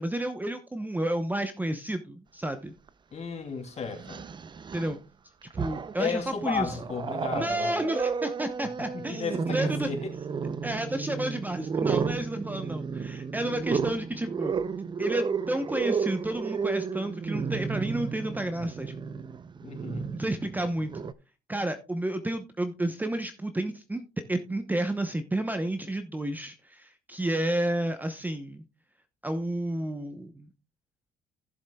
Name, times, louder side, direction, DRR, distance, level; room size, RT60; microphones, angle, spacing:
voice 1, 0.0-2.7 4.7-5.0 5.5-6.7 7.3-9.9 10.6-14.5 15.0-18.9 20.1-21.1 21.5-24.0 24.3-28.6 29.2-30.5, right 1 dB, 10° right, 0.9 m, -31 dB
Growling, 2.9-3.0 3.9-5.0 5.4-6.1 6.5-21.1, right 5 dB, 25° right, 0.5 m, -32 dB
voice 2, 3.1-4.2 6.0-7.7 8.9-10.2 11.1-11.2 19.6-20.1, left 5 dB, 40° left, 2.9 m, -34 dB
15.5 x 7.2 x 2.3 m
cardioid pair, 110°, 17 cm